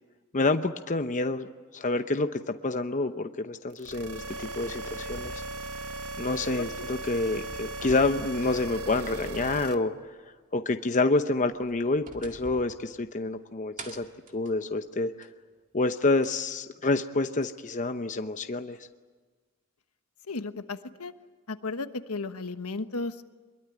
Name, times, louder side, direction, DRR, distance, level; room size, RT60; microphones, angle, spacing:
voice 1, 0.3-1.5 1.7-5.4 6.2-9.9 10.5-14.0 14.3-15.3 15.7-18.8, left 3 dB, 35° left, 8 dB, 0.8 m, -28 dB
sound 1, 3.8-9.7, right 2 dB, 80° right, 1.6 m, -37 dB
sound 2, 5.1-6.9 7.2-9.2 9.6-9.7 11.3-13.4 13.8-15.4 16.2-16.3 17.4-17.5, right 2 dB, 35° right, 2.2 m, -48 dB
voice 2, 20.3-21.1 21.5-23.3, left 3 dB, 75° left, 10 dB, 1.2 m, -35 dB
25.0 x 22.5 x 9.6 m, 1.4 s
head